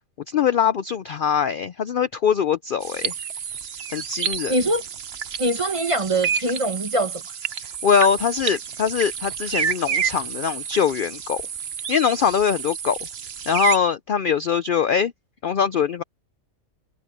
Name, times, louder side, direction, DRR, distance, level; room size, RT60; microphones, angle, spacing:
voice 1, 0.3-3.1 3.9-4.5 7.6-11.4 11.9-13.0 13.5-15.1 15.4-16.0, left 7 dB, 65° left, 0.5 m, -22 dB
sound 1, 2.8-13.8, right 7 dB, 50° right, 1.0 m, -30 dB
voice 2, 4.5-4.8 5.4-7.2, right 1 dB, 25° right, 0.9 m, -23 dB
omnidirectional pair, 1.5 m